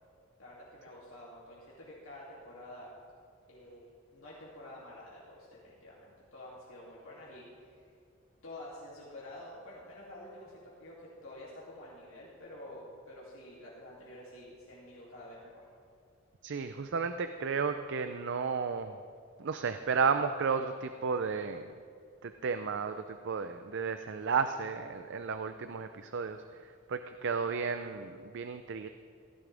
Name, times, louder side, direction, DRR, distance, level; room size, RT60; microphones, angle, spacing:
voice 1, 0.4-2.9 3.5-7.9 8.4-15.6, left 1 dB, 80° left, -7 dB, 2.7 m, -49 dB
voice 2, 16.4-19.0 19.4-21.7 22.2-28.9, right 5 dB, 60° right, 9 dB, 0.5 m, -33 dB
16.5 x 15.0 x 3.4 m, 2.4 s
head